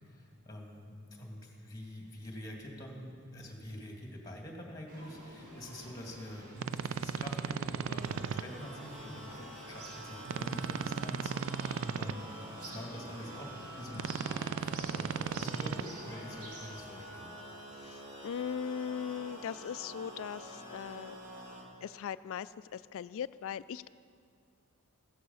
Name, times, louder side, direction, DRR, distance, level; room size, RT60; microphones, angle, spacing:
voice 1, 0.0-17.3, left 1 dB, 15° left, 0 dB, 2.3 m, -46 dB
sound 1, 4.9-16.8, right 1 dB, 80° right, 2.6 m, -50 dB
sound 2, 6.6-8.4 10.3-12.1 13.9-15.8, right 6 dB, 60° right, 0.4 m, -36 dB
sound 3, 8.0-21.6, right 1 dB, 35° right, 2.9 m, -48 dB
voice 2, 17.8-21.1 21.8-23.9, left 7 dB, 65° left, 16 dB, 0.3 m, -39 dB
15.5 x 13.0 x 5.5 m, 2.4 s
head